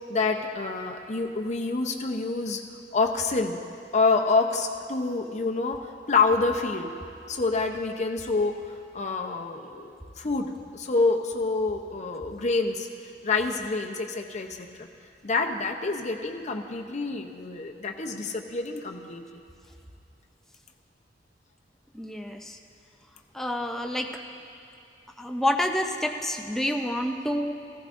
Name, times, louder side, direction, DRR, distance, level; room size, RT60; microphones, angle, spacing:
voice 1, 0.1-2.6 2.9-3.6 3.9-5.8 6.1-6.9 7.3-12.9 13.2-14.9 15.2-19.2, left 3 dB, 40° left, 3 dB, 0.7 m, -27 dB
voice 2, 21.9-22.6 23.3-24.2 25.2-27.5, left 1 dB, ahead, 3 dB, 0.6 m, -28 dB
15.0 x 15.0 x 2.6 m, 2.6 s
head